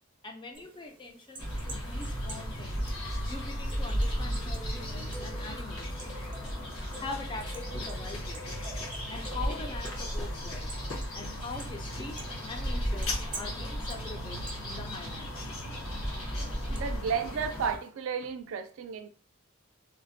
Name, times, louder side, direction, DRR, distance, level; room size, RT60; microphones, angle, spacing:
voice 1, 0.2-2.9 3.2-6.0 6.9-8.5 9.1-10.7 11.1-12.2 12.5-15.5, left 3 dB, 25° left, 0.4 m, -43 dB
sound 1, 0.5-17.9, right 2 dB, 25° right, 0.6 m, -49 dB
sound 2, 1.4-17.8, equal, 90° left, 1.2 m, -35 dB
sound 3, 12.6-13.6, left 4 dB, 70° left, 0.6 m, -37 dB
voice 2, 16.7-19.1, right 6 dB, 70° right, 0.3 m, -33 dB
3.2 x 2.1 x 2.6 m
head